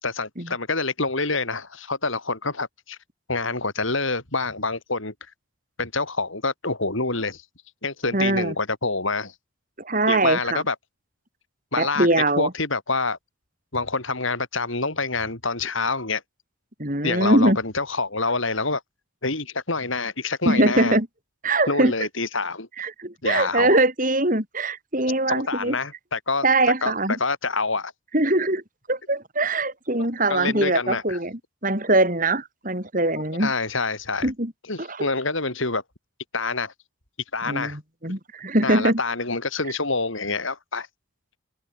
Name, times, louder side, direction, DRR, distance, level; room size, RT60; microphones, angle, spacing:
voice 1, 0.0-3.0 3.3-5.1 5.8-7.4 7.8-9.3 10.1-10.7 11.7-13.2 13.7-16.2 17.0-18.8 19.2-21.0 21.7-22.7 23.2-23.8 25.3-26.4 26.8-27.9 30.3-31.2 33.4-34.3 34.7-35.8 36.3-36.7 37.3-37.8 38.6-40.9, left 3 dB, 70° left, 4.9 m, -26 dB
voice 2, 8.1-8.5 9.8-10.6 11.8-12.5 16.8-17.6 20.4-21.1 21.4-21.9 22.8-25.7 26.4-27.2 28.1-28.6 28.9-33.5 34.2-34.5 34.8-35.1 37.4-39.0, right 2 dB, 40° right, 6.7 m, -22 dB
open air
head